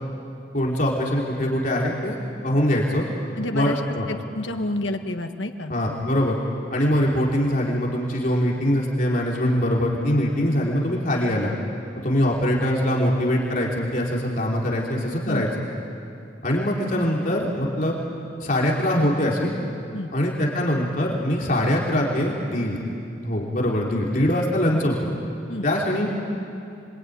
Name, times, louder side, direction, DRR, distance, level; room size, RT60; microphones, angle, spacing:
voice 1, 0.5-2.1 2.4-3.0 3.5-4.1 5.7-6.4 6.7-11.5 12.0-15.5 16.4-18.0 18.4-19.5 20.1-22.8 23.2-25.0 25.6-26.1, equal, 45° left, -3 dB, 3.4 m, -23 dB
voice 2, 3.4-5.7 15.2-15.5 19.9-20.1 25.5-25.7, left 1 dB, 80° left, 5 dB, 1.7 m, -29 dB
25.5 x 23.5 x 9.4 m, 2.6 s
head